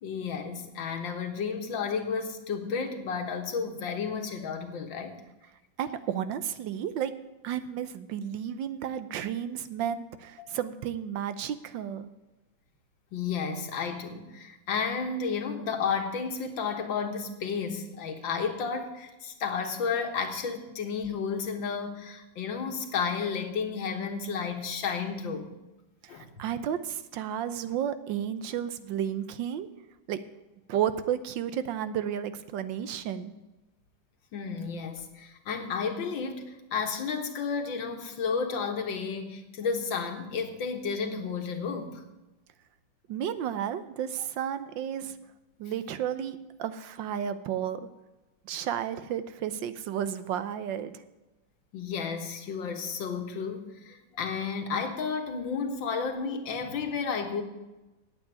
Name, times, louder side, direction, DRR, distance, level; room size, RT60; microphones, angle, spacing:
voice 1, 0.0-5.2 10.4-10.5 13.1-25.5 26.1-26.3 34.3-42.0 51.7-57.4, left 5 dB, 75° left, 5 dB, 2.1 m, -32 dB
voice 2, 5.8-7.1 7.4-12.1 26.1-29.7 30.1-30.2 30.7-33.3 43.1-45.1 45.6-47.9 48.4-51.0, right 9 dB, 75° right, 12 dB, 1.4 m, -32 dB
8.9 x 8.5 x 9.0 m, 1.0 s
omnidirectional pair, 2.1 m